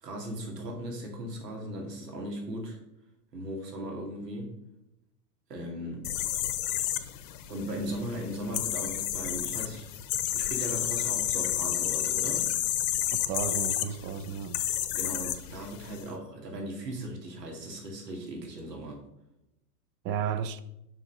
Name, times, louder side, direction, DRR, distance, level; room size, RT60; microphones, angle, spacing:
voice 1, 0.0-2.8 3.3-4.5 5.5-6.1 7.5-9.9 10.3-12.5 14.9-19.0, right 1 dB, 90° right, 2.5 m, -38 dB
sound 1, 6.0-16.0, left 12 dB, 65° left, 1.1 m, -31 dB
voice 2, 13.1-14.6 20.0-20.6, right 8 dB, 25° right, 0.5 m, -33 dB
7.3 x 5.4 x 5.4 m
hypercardioid pair, 115°, 47 cm